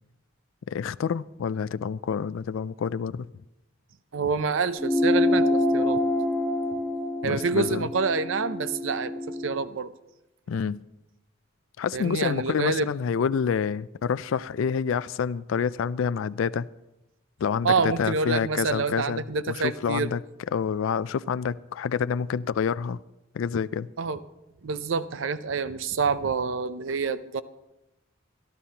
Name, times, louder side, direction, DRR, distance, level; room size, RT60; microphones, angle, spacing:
voice 1, 0.7-3.3 7.2-7.9 10.5-10.8 11.8-16.7 17.4-20.2 20.5-23.0 23.3-23.9, left 6 dB, 70° left, 16 dB, 0.3 m, -28 dB
voice 2, 4.1-6.0 7.2-9.9 11.9-12.9 17.6-20.1 24.0-24.2 24.6-27.4, right 4 dB, 70° right, 13 dB, 0.6 m, -27 dB
sound 1, 4.8-9.6, left 1 dB, 10° left, 0.8 m, -26 dB
22.0 x 13.0 x 2.9 m, 0.94 s
head